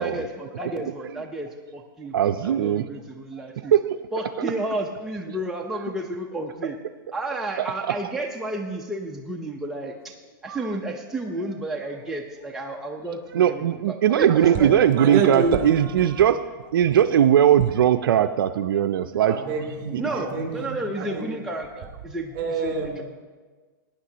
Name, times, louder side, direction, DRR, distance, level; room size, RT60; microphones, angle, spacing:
voice 1, 0.0-3.7 4.1-6.8 7.1-10.1 10.4-14.8 20.0-23.0, right 1 dB, 5° right, -1 dB, 0.7 m, -32 dB
voice 2, 2.1-2.9 3.6-4.0 10.5-10.6 13.3-16.4 16.7-19.4, right 10 dB, 85° right, 9 dB, 0.4 m, -19 dB
voice 3, 14.3-15.8 19.3-21.3 22.3-23.0, right 5 dB, 40° right, 2 dB, 2.8 m, -27 dB
16.5 x 9.8 x 2.9 m, 1.4 s
hypercardioid pair, 135°, 12 cm